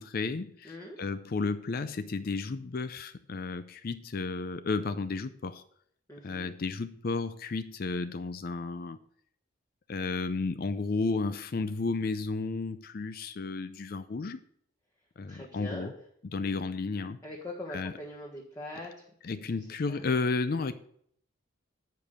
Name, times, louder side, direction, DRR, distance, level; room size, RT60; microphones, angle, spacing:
voice 1, 0.0-5.6 6.2-9.0 9.9-14.4 15.2-15.9 16.3-17.2 17.7-17.9 19.2-20.7, left 3 dB, 45° left, 11 dB, 0.4 m, -33 dB
voice 2, 0.6-1.0 6.1-6.5 15.3-15.9 17.2-19.4 19.9-20.0, left 1 dB, 15° left, -4 dB, 1.3 m, -42 dB
9.5 x 5.1 x 6.5 m, 0.66 s
head